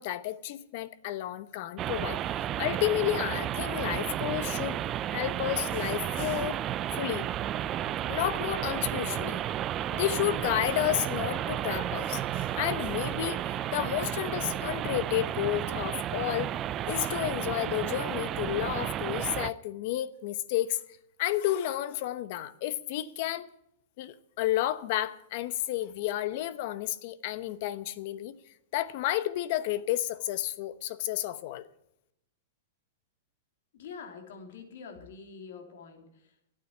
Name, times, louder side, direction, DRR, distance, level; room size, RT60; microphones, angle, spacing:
voice 1, 0.0-2.2 2.6-4.8 5.1-6.6 6.9-7.3 8.1-9.4 9.9-16.5 16.9-20.8 21.2-23.5 24.0-28.4 28.7-31.6, left 14 dB, 50° left, 0.9 m, -31 dB
sound 1, 1.8-19.5, right 11 dB, 30° right, 0.5 m, -32 dB
voice 2, 33.7-36.5, left 5 dB, 70° left, 3.0 m, -46 dB
12.0 x 8.7 x 9.5 m
hypercardioid pair, 145°, 0 cm